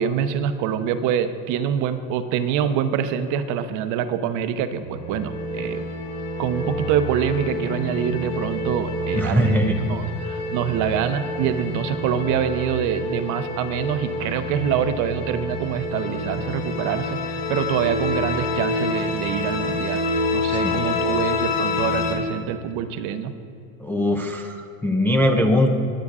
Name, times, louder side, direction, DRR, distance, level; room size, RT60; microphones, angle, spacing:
voice 1, 0.0-5.9 6.4-20.0 20.3-23.4, right 8 dB, 50° right, 10 dB, 0.7 m, -25 dB
sound 1, 4.8-22.1, left 2 dB, 55° left, 2.7 m, -28 dB
voice 2, 9.1-9.8 20.6-21.0 23.8-25.7, left 1 dB, 5° left, 1 dB, 0.3 m, -21 dB
21.0 x 8.5 x 2.4 m, 2.6 s
supercardioid pair, 130°, 38 cm